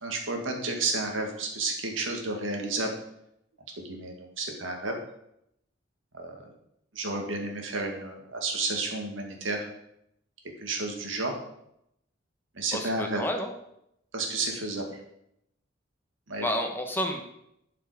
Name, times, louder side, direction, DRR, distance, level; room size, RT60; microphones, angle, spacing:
voice 1, 0.0-2.9 3.8-5.0 6.1-6.4 6.9-9.7 10.6-11.4 12.5-13.2 14.1-14.8 16.3-16.5, right 3 dB, 85° right, 2 dB, 2.2 m, -31 dB
voice 2, 12.7-13.5 16.4-17.2, equal, 10° left, 3 dB, 1.1 m, -30 dB
11.5 x 5.8 x 5.1 m, 0.77 s
head